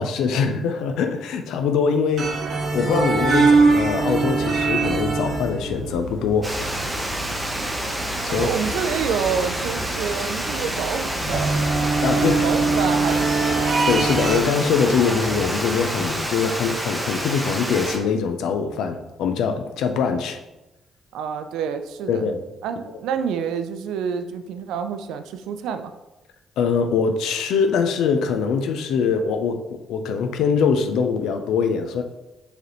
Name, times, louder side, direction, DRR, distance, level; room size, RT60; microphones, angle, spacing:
voice 1, 0.0-2.3 2.7-6.5 8.2-8.7 12.0-12.4 13.9-20.4 22.1-22.4 26.6-32.0, left 6 dB, 85° left, 6 dB, 0.4 m, -23 dB
sound 1, 2.2-14.4, right 3 dB, 55° right, 0.9 m, -23 dB
Water, 6.4-18.0, right 1 dB, 10° right, 0.7 m, -28 dB
voice 2, 8.3-11.6 12.1-13.7 21.1-22.3 22.6-25.9, right 7 dB, 90° right, 8 dB, 0.3 m, -28 dB
4.7 x 3.3 x 3.0 m, 0.98 s
cardioid pair, 90°, 0 cm